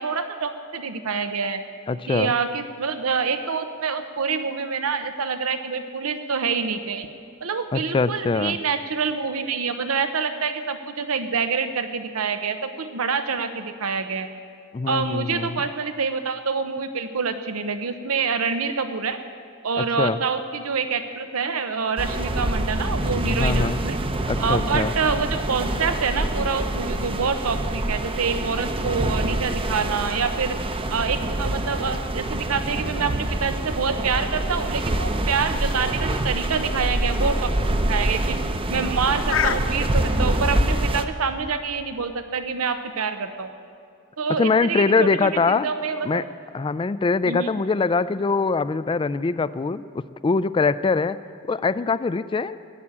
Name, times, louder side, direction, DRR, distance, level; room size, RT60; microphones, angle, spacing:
voice 1, 0.0-1.6 2.1-7.1 7.4-14.3 14.9-19.2 19.6-24.0 24.4-30.6 30.9-37.5 37.9-38.4 38.7-43.5 44.2-45.1 45.5-46.2 47.3-47.5, right 5 dB, 90° right, 9 dB, 0.7 m, -26 dB
voice 2, 1.9-2.3 7.7-8.6 14.7-15.6 19.8-20.2 23.3-23.8 24.3-24.9 44.3-45.7 46.0-46.2 46.5-49.8 50.2-51.2 51.5-52.6, left 4 dB, 25° left, 16 dB, 0.3 m, -23 dB
sound 1, 22.0-41.1, right 1 dB, 25° right, 0.6 m, -26 dB
sound 2, 34.7-40.0, left 7 dB, 65° left, 0.6 m, -32 dB
15.5 x 7.3 x 9.7 m, 2.5 s
head